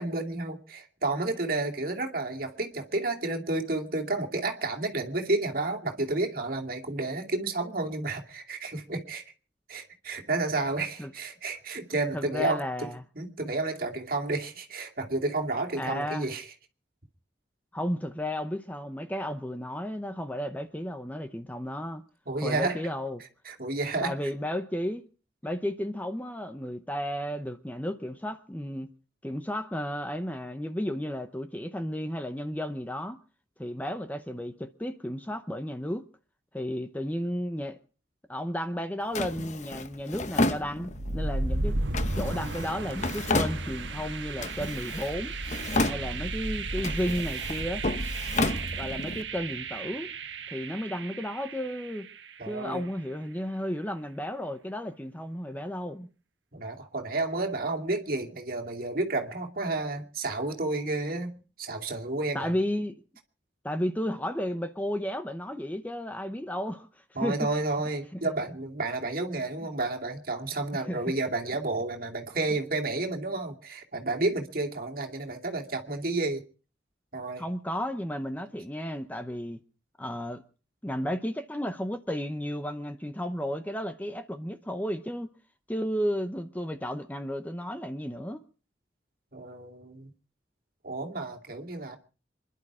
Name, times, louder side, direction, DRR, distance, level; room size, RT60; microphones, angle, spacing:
voice 1, 0.0-9.2 9.7-12.9 13.2-16.5 22.3-22.8 23.4-24.1 52.4-52.8 56.5-61.3 61.6-62.5 67.1-76.4 77.1-77.4 89.3-90.1 90.8-92.0, right 2 dB, 50° right, 2.6 m, -31 dB
voice 2, 12.1-13.0 15.8-16.3 17.7-22.0 22.4-23.2 24.0-25.0 25.4-28.9 29.2-33.2 33.6-36.0 36.5-37.8 38.3-45.3 45.9-47.8 48.8-50.1 50.5-52.1 52.5-56.1 62.3-62.9 63.6-66.9 67.2-67.6 68.1-68.2 70.7-71.0 77.4-79.6 80.0-80.4 80.8-85.3 85.7-88.4, equal, 10° left, 0.8 m, -33 dB
Drawer open or close, 39.2-41.2 41.9-44.0 44.4-45.2 45.4-46.4 46.8-49.2, left 2 dB, 40° left, 0.9 m, -31 dB
sound 1, 40.9-52.8, right 2 dB, 85° right, 1.4 m, -34 dB
26.5 x 11.0 x 4.9 m
head